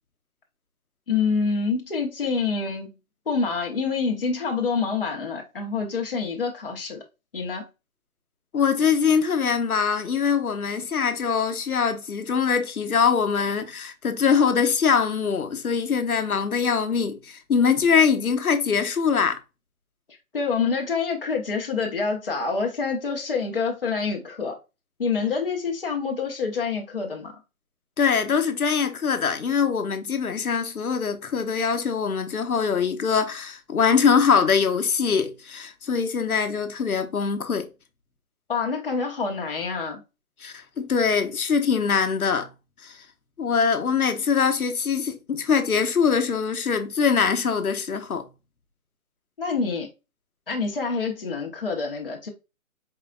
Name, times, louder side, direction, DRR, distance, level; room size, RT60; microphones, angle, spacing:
voice 1, 1.1-2.9 3.3-7.0 7.3-7.7 20.3-24.6 25.0-27.3 38.5-40.0 49.4-49.9 50.5-52.3, left 5 dB, 40° left, 1.0 m, -27 dB
voice 2, 8.5-19.4 28.0-37.7 40.4-42.5 42.8-43.0 43.4-48.3, left 6 dB, 80° left, 1.1 m, -23 dB
4.9 x 3.5 x 2.3 m
hypercardioid pair, 175°, 43 cm